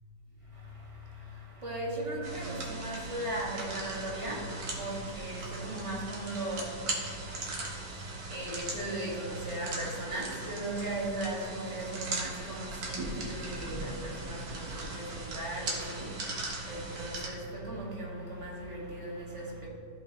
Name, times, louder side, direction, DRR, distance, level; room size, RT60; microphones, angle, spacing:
voice 1, 0.5-19.7, right 1 dB, 20° right, -5 dB, 1.7 m, -38 dB
sound 1, 2.2-17.3, right 2 dB, 70° right, 1.9 m, -39 dB
14.0 x 5.4 x 2.9 m, 2.8 s
omnidirectional pair, 1.7 m